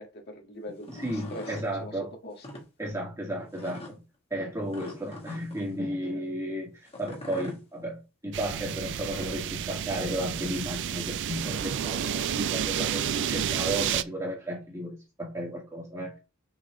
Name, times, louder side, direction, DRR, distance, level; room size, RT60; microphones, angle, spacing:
voice 1, 0.0-1.0 1.3-2.4, left 1 dB, 50° left, 1.7 m, -42 dB
sound 1, 0.7-1.7 2.3-2.6 3.5-3.9 4.7-5.7 6.9-7.6 8.8-9.5, left 1 dB, 25° left, 1.6 m, -43 dB
voice 2, 0.9-2.1 2.8-4.0 4.3-16.1, right 1 dB, 15° right, 2.1 m, -34 dB
sound 2, 8.3-14.0, right 9 dB, 55° right, 0.4 m, -30 dB
6.2 x 4.2 x 3.7 m
head